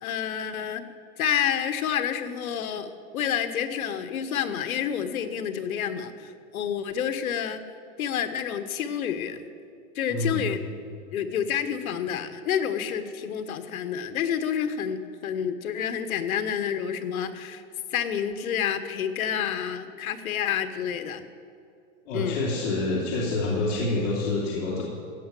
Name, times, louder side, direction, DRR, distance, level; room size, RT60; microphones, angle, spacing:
voice 1, 0.0-0.8 1.2-7.6 8.0-9.4 9.9-10.6 11.1-17.6 17.9-21.2 22.1-22.4, left 8 dB, 80° left, 9 dB, 1.3 m, -29 dB
voice 2, 10.1-10.5 22.0-24.8, left 2 dB, 50° left, -6 dB, 3.1 m, -27 dB
16.0 x 6.2 x 9.1 m, 2.5 s
supercardioid pair, 165°, 41 cm